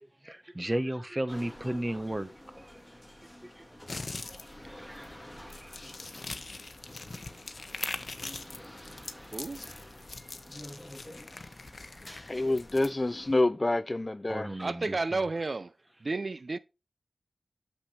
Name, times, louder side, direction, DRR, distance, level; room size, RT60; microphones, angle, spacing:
voice 1, 0.0-2.8 3.4-3.6 3.9-6.0 14.3-15.0, right 1 dB, 20° right, 0.9 m, -36 dB
sound 1, 1.3-13.4, left 1 dB, 5° left, 2.1 m, -49 dB
sound 2, 3.9-12.9, left 3 dB, 55° left, 0.8 m, -42 dB
voice 2, 9.3-9.7 14.6-15.8 16.0-16.6, right 3 dB, 55° right, 0.4 m, -32 dB
voice 3, 12.3-14.5, left 2 dB, 30° left, 0.3 m, -27 dB
6.6 x 5.8 x 4.3 m
cardioid pair, 45°, 0 cm